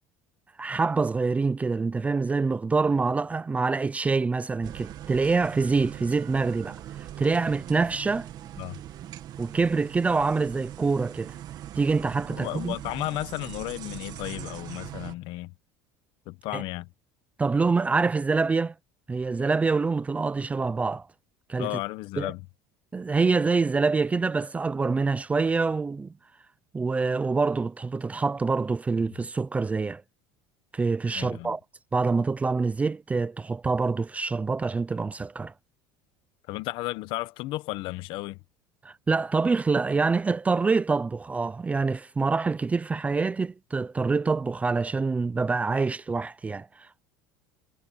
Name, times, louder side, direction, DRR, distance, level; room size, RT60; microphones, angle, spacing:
voice 1, 0.6-8.3 9.4-11.4 11.8-12.8 16.5-16.6 17.4-18.7 19.1-21.1 21.5-21.7 22.2-22.3 22.9-26.1 26.7-30.0 30.7-31.6 31.9-35.5 38.8-47.0, right 4 dB, 15° right, 0.6 m, -26 dB
sound 1, 4.6-15.1, right 12 dB, 45° right, 2.1 m, -41 dB
voice 2, 12.3-15.5 16.3-16.9 21.6-22.4 29.2-29.3 31.1-31.6 36.5-38.4, left 18 dB, 60° left, 1.2 m, -34 dB
cardioid pair, 140°, 10 cm